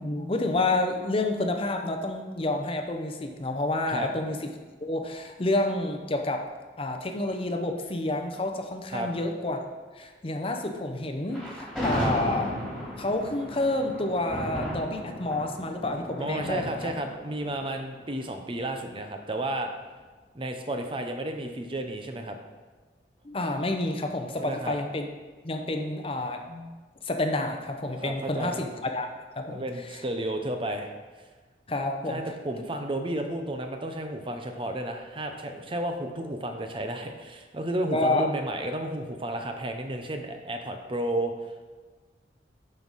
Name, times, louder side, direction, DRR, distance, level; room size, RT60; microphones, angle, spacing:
voice 1, 0.0-4.5 4.8-6.4 6.8-9.6 10.0-12.5 13.0-16.7 23.2-25.1 25.4-26.7 27.0-28.7 29.0-29.1 29.4-29.6 31.7-32.2 37.9-38.3, left 2 dB, 30° left, 4 dB, 0.7 m, -29 dB
Thunder, 11.3-18.5, equal, 5° right, 2.7 m, -35 dB
voice 2, 16.2-19.7 20.3-22.4 24.4-24.8 28.0-28.6 29.4-30.9 32.1-41.7, right 1 dB, 30° right, 5 dB, 0.6 m, -32 dB
11.0 x 5.4 x 4.0 m, 1.3 s
head